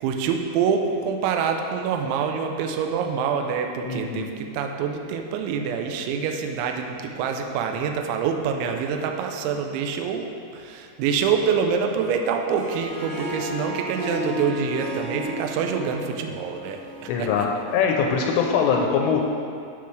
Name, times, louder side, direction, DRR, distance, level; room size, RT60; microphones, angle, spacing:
voice 1, 0.0-17.5, right 6 dB, 90° right, 4 dB, 2.6 m, -26 dB
voice 2, 3.8-4.3 17.1-17.5 17.7-19.3, left 6 dB, 85° left, 1 dB, 3.0 m, -22 dB
Harp, 12.4-17.6, left 1 dB, 70° right, 3.4 m, -34 dB
11.0 x 6.8 x 3.3 m, 2.4 s
omnidirectional pair, 5.9 m